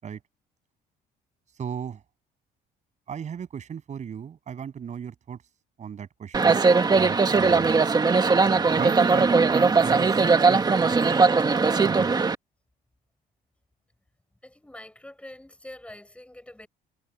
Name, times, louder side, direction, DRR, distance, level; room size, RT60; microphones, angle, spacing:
voice 1, 1.6-2.0 3.1-5.4 5.8-7.8 8.7-10.2 10.5-11.0 11.8-12.1, right 7 dB, 45° right, 7.3 m, -36 dB
sound 1, 6.3-12.4, right 4 dB, 25° right, 1.4 m, -20 dB
voice 2, 14.4-16.7, left 1 dB, 5° left, 5.1 m, -45 dB
cardioid pair, 110°, 17 cm